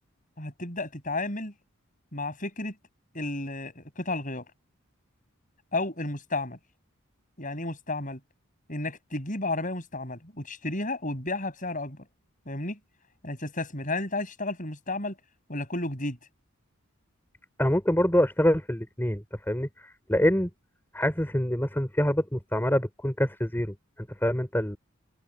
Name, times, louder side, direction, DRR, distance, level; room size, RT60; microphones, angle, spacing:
voice 1, 0.4-1.5 2.1-2.7 3.1-4.5 5.7-6.6 7.4-8.2 8.7-12.0 12.5-12.8 13.2-15.2 15.5-16.2, left 2 dB, 40° left, 7.4 m, -32 dB
voice 2, 17.6-19.7 20.1-20.5 20.9-24.8, equal, 10° left, 3.8 m, -25 dB
head